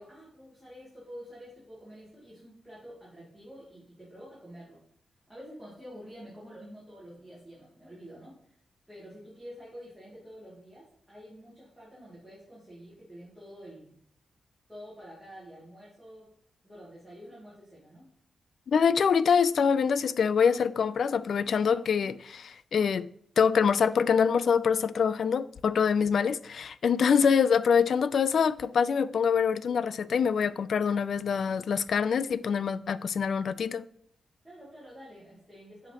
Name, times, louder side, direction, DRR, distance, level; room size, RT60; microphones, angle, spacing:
voice 1, 0.0-4.8 5.3-8.5 8.9-14.0 14.7-16.3 16.6-18.0 34.4-35.9, equal, ahead, 2.4 m, -48 dB
voice 2, 18.7-23.1 23.4-33.8, left 6 dB, 55° left, 0.3 m, -25 dB
7.6 x 4.9 x 2.9 m
wide cardioid pair, 165°, 0 cm